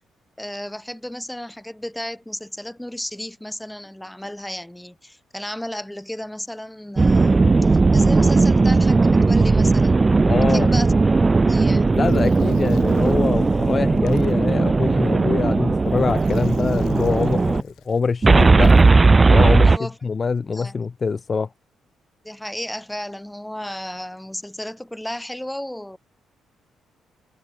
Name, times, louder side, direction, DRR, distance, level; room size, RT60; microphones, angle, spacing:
voice 1, 0.4-10.0 10.5-10.9 11.4-11.9 19.6-20.0 20.5-20.8 22.2-26.0, left 1 dB, 5° left, 2.1 m, -33 dB
sound 1, 7.0-17.6 18.2-19.8, right 3 dB, 25° right, 0.4 m, -16 dB
voice 2, 10.2-10.7 11.9-18.7 19.3-21.5, left 5 dB, 35° left, 0.9 m, -24 dB
Gurgling, 11.8-19.3, left 13 dB, 85° left, 7.9 m, -53 dB
cardioid pair, 90°, 0 cm